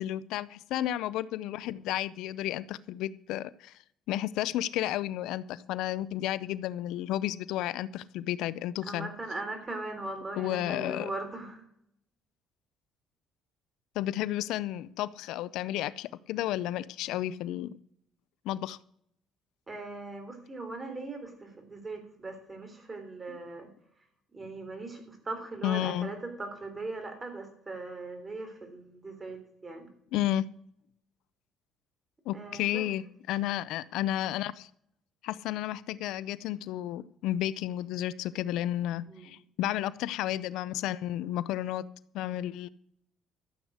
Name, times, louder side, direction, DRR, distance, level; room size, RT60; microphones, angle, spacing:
voice 1, 0.0-3.8 4.1-9.1 10.4-11.1 14.0-17.7 18.4-18.8 23.3-23.4 25.6-26.1 30.1-30.4 32.3-34.7 35.2-41.8 42.1-42.7, left 13 dB, 80° left, 18 dB, 0.5 m, -32 dB
voice 2, 8.9-11.6 19.7-23.7 24.3-29.9 32.3-32.8 39.1-39.3, right 2 dB, 20° right, 6 dB, 3.6 m, -40 dB
13.5 x 7.9 x 6.4 m, 0.70 s
cardioid pair, 105°, 0 cm